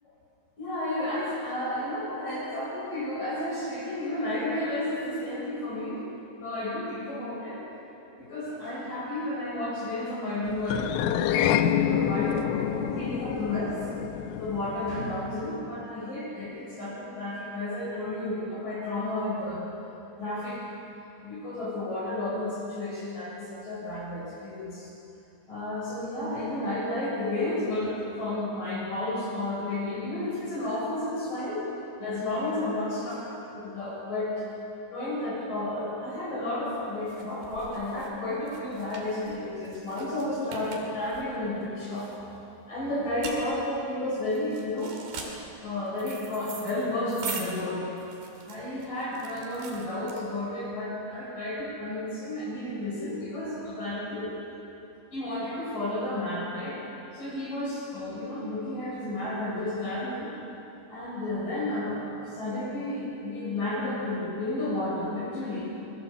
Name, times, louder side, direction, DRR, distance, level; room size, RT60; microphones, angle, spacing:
voice 1, 0.6-6.1 6.4-7.6 8.2-13.7 14.4-19.7 20.2-20.6 21.2-24.9 25.5-31.7 32.0-34.3 34.9-42.1 42.7-45.0 45.6-47.8 48.4-54.3 55.1-56.8 57.1-60.3 60.9-65.7, left 1 dB, 40° left, -5 dB, 8.8 m, -32 dB
sound 1, 10.7-15.2, left 11 dB, 85° left, 3.3 m, -28 dB
sound 2, 36.2-50.6, right 5 dB, 55° right, 4.3 m, -43 dB
26.0 x 20.5 x 7.4 m, 2.8 s
omnidirectional pair, 5.7 m